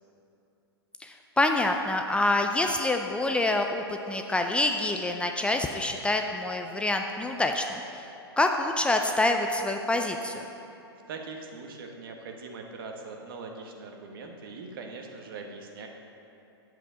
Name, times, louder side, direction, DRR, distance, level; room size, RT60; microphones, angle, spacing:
voice 1, 1.0-8.1 8.4-10.5, left 2 dB, 10° left, 4 dB, 0.4 m, -26 dB
voice 2, 11.1-15.9, right 4 dB, 55° right, 3 dB, 1.3 m, -41 dB
9.8 x 7.8 x 5.0 m, 2.9 s
figure-of-eight pair, 110°, 14 cm